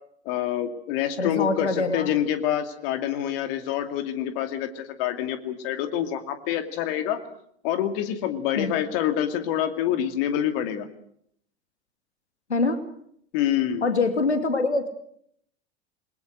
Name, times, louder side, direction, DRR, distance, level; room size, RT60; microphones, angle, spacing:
voice 1, 0.2-7.2 7.6-10.9 13.3-13.8, left 10 dB, 60° left, 8 dB, 2.5 m, -26 dB
voice 2, 1.2-2.1 8.5-8.8 12.5-12.8 13.8-14.9, left 3 dB, 90° left, 8 dB, 2.7 m, -24 dB
29.0 x 22.0 x 6.5 m, 0.69 s
figure-of-eight pair, 80°, 32 cm